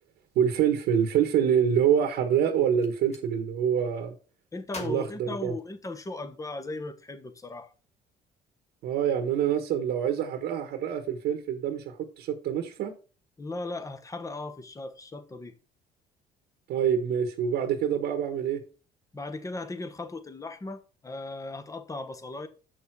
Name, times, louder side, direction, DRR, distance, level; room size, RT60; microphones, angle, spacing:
voice 1, 0.3-4.1 4.8-5.5 8.8-12.9 16.7-18.6, right 8 dB, 75° right, 1.3 m, -26 dB
Gunshot gunfire, 2.8-3.3 4.7-6.2, left 3 dB, 40° left, 2.4 m, -45 dB
voice 2, 4.5-7.7 13.4-15.5 19.1-22.5, left 2 dB, 20° left, 1.2 m, -37 dB
7.1 x 6.3 x 4.6 m
cardioid pair, 110°, 17 cm